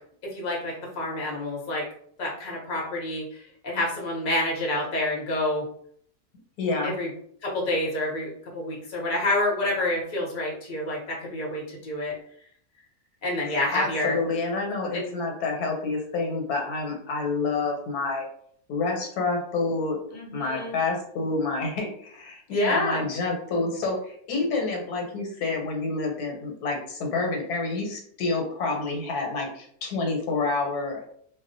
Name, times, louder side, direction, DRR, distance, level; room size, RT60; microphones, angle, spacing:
voice 1, 0.2-1.8 2.2-5.7 6.8-7.1 7.4-8.3 8.5-12.1 13.2-14.2 15.0-15.1 20.1-20.8 22.5-23.0, left 1 dB, 45° left, -4 dB, 0.7 m, -28 dB
voice 2, 6.6-6.9 13.5-18.3 18.7-20.0 20.3-31.0, left 3 dB, 85° left, 1 dB, 1.2 m, -28 dB
2.4 x 2.1 x 2.5 m, 0.63 s
omnidirectional pair, 1.6 m